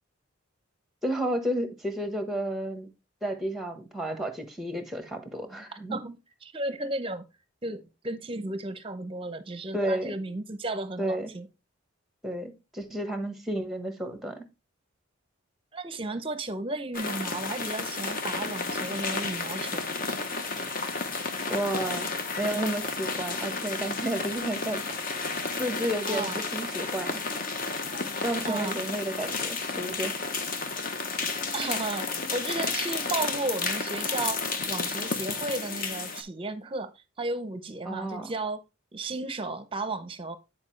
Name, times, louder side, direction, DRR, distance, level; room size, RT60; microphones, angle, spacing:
voice 1, 1.0-2.9 3.2-6.0 9.7-10.1 11.0-11.3 12.2-14.4 21.5-22.1 22.4-25.0 25.6-27.2 28.2-30.1 37.8-38.3, right 1 dB, ahead, 1.1 m, -32 dB
voice 2, 5.9-7.2 7.6-11.5 15.7-19.9 26.1-26.4 28.4-28.8 31.5-34.4 34.7-38.6 38.9-40.4, right 2 dB, 25° right, 0.7 m, -34 dB
sound 1, 16.9-36.2, left 4 dB, 45° left, 0.9 m, -32 dB
9.7 x 4.6 x 3.2 m
head